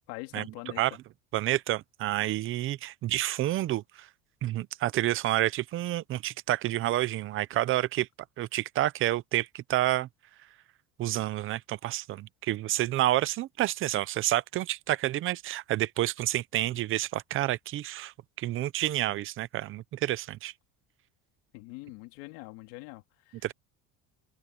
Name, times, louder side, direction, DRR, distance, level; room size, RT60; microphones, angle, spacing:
voice 1, 0.1-1.0 21.5-23.5, left 22 dB, 85° left, 3.1 m, -44 dB
voice 2, 1.3-4.1 4.4-8.1 8.4-10.1 11.0-18.1 18.4-20.5 23.4-23.5, right 15 dB, 40° right, 0.7 m, -29 dB
cardioid pair, 155°, 33 cm